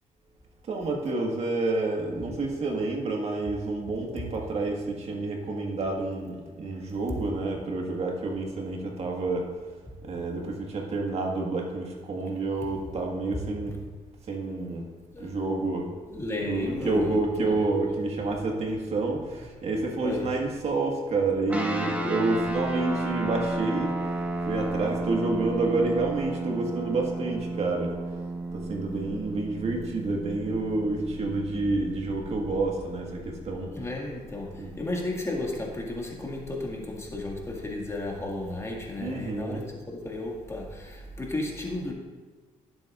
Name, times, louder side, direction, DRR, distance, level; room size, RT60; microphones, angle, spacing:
voice 1, 0.7-9.5 10.0-13.8 14.3-14.9 15.2-15.9 16.4-24.0 24.5-28.0 28.5-33.7 34.6-34.7 39.0-39.6, right 3 dB, 50° right, 1 dB, 1.7 m, -29 dB
voice 2, 16.1-17.6 20.0-20.4 33.5-41.9, left 2 dB, 20° left, -1 dB, 2.1 m, -34 dB
sound 1, 21.5-33.3, right 2 dB, 10° right, 1.4 m, -33 dB
17.5 x 7.5 x 2.5 m, 1.4 s
cardioid pair, 100°, 13 cm